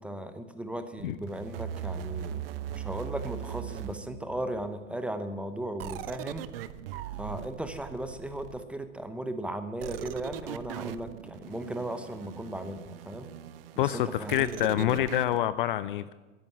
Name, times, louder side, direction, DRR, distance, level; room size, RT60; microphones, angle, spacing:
voice 1, 0.0-6.5 7.2-13.3 13.8-15.0, right 1 dB, 5° right, 10 dB, 0.8 m, -37 dB
sound 1, 1.0-4.7 5.8-8.9 9.8-15.4, right 10 dB, 45° right, 0.7 m, -40 dB
voice 2, 13.8-16.1, left 13 dB, 40° left, 15 dB, 0.5 m, -27 dB
13.0 x 11.0 x 7.9 m, 1.2 s
figure-of-eight pair, 100°, 39 cm